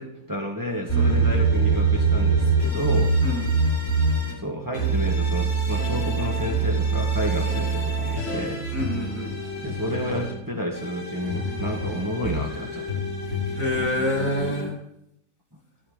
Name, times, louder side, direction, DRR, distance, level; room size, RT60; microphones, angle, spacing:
voice 1, 0.0-3.2 4.4-8.6 9.6-13.0, equal, 15° right, 0 dB, 1.5 m, -30 dB
voice 2, 0.9-1.3 3.2-3.5 8.7-9.4 13.5-14.7, equal, 85° left, -2 dB, 6.8 m, -27 dB
sound 1, 0.9-4.3 4.7-10.3 10.7-14.6, right 3 dB, 65° left, 6.1 m, -24 dB
15.5 x 13.5 x 3.9 m, 0.80 s
omnidirectional pair, 1.4 m